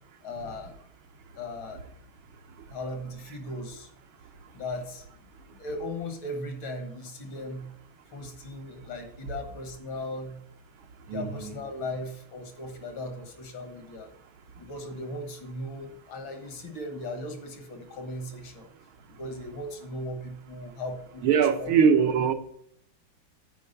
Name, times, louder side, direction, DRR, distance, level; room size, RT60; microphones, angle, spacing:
voice 1, 0.2-0.8 1.4-1.8 2.7-3.9 4.5-5.2 5.5-7.7 8.1-10.4 11.1-14.1 14.6-18.7 19.1-21.7, left 1 dB, 70° left, 2.2 m, -37 dB
voice 2, 11.1-11.6 21.2-22.3, right 7 dB, 80° right, 1.7 m, -22 dB
9.5 x 4.7 x 6.6 m
omnidirectional pair, 2.2 m